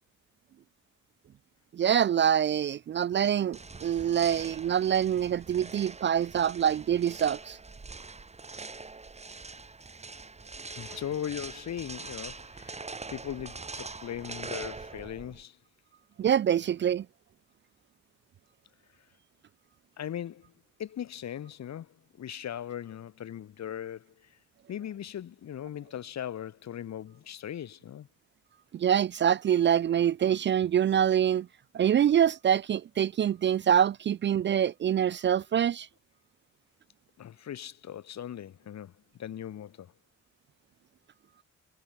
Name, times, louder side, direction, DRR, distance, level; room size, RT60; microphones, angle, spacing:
voice 1, 1.7-7.6 16.2-17.1 28.7-31.5 31.7-35.9, right 9 dB, 40° right, 0.4 m, -25 dB
sound 1, 3.5-15.4, right 3 dB, 20° right, 1.9 m, -43 dB
voice 2, 10.7-12.8 13.1-15.6 20.0-20.5 20.8-24.3 24.7-28.1 37.2-38.9 39.2-39.9, left 10 dB, 60° left, 3.1 m, -39 dB
cardioid pair, 90°, 30 cm